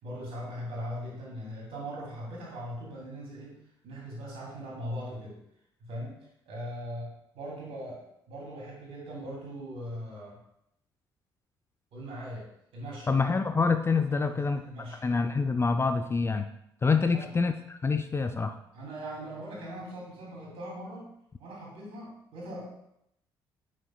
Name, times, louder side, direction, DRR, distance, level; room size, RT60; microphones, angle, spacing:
voice 1, 0.0-3.5 3.8-5.4 5.8-6.2 6.5-10.4 11.9-12.5 12.7-13.1 14.1-15.0 17.1-17.3 18.7-21.1 21.4-22.9, equal, 55° right, -3 dB, 2.9 m, -40 dB
voice 2, 13.1-14.6 15.0-16.5 16.8-18.6, left 4 dB, 20° left, 7 dB, 0.5 m, -26 dB
8.5 x 6.5 x 2.3 m, 0.77 s
figure-of-eight pair, 45°, 12 cm